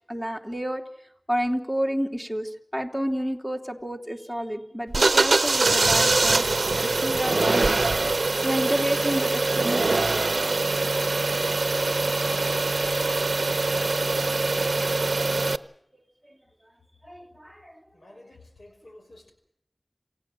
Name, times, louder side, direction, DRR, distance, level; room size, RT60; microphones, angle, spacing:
voice 1, 0.1-0.8 1.3-6.5 6.8-10.2 17.0-17.7, equal, 10° left, 2 dB, 3.2 m, -30 dB
sound 1, 4.9-15.6, right 3 dB, 90° right, 0.8 m, -23 dB
voice 2, 17.9-19.3, left 2 dB, 80° left, 4 dB, 5.5 m, -50 dB
28.0 x 16.5 x 7.7 m, 0.73 s
wide cardioid pair, 60°, 0 cm